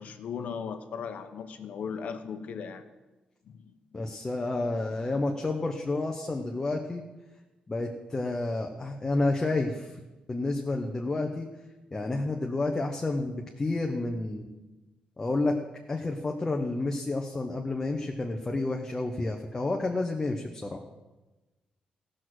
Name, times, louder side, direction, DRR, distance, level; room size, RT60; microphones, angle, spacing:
voice 1, 0.0-2.8 3.5-3.7, left 6 dB, 60° left, 8 dB, 0.9 m, -37 dB
voice 2, 3.9-7.0 7.7-10.0 10.3-11.5 11.9-14.5 15.2-15.6 15.9-20.8, left 2 dB, 20° left, 2 dB, 0.8 m, -30 dB
15.5 x 6.3 x 6.2 m, 1.1 s
wide cardioid pair, 165°, 3 cm